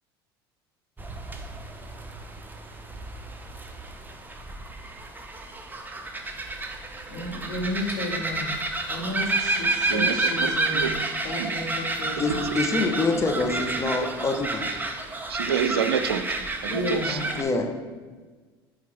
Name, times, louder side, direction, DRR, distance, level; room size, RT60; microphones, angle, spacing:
sound 1, 1.0-17.4, right 2 dB, 15° right, 0.9 m, -30 dB
voice 1, 7.1-8.5 8.9-10.9 11.2-12.3 16.7-17.4, left 2 dB, 65° left, 2.0 m, -32 dB
voice 2, 9.9-10.9 11.4-11.6 12.3-12.4 14.0-14.1 15.3-17.2, right 7 dB, 85° right, 0.4 m, -28 dB
voice 3, 12.2-14.6 16.7-16.8 17.0-17.7, left 3 dB, 20° left, 1.0 m, -26 dB
7.3 x 5.1 x 3.5 m
hypercardioid pair, 70°, 13 cm